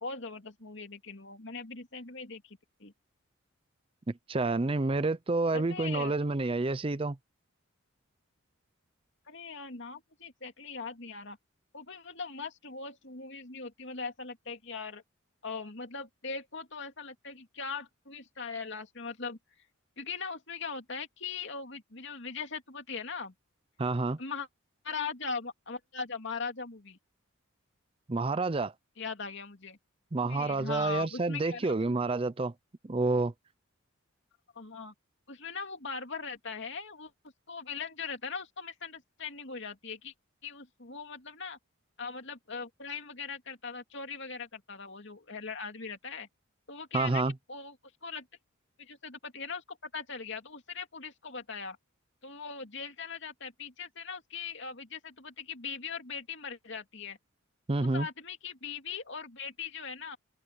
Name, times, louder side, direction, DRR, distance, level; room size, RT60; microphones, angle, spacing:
voice 1, 0.0-2.9 5.5-6.2 9.3-11.4 11.7-15.0 15.4-19.4 20.0-23.3 24.2-24.5 24.8-27.0 29.0-29.8 30.2-32.0 34.5-34.9 35.3-37.1 37.5-40.1 40.4-41.6 42.0-46.3 46.7-47.8 48.0-48.3 48.8-51.8 52.2-57.2 57.8-60.2, left 5 dB, 55° left, 2.8 m, -40 dB
voice 2, 4.3-7.2 23.8-24.2 28.1-28.7 30.1-32.5 32.8-33.3 46.9-47.3 57.7-58.1, right 3 dB, 25° right, 0.5 m, -29 dB
head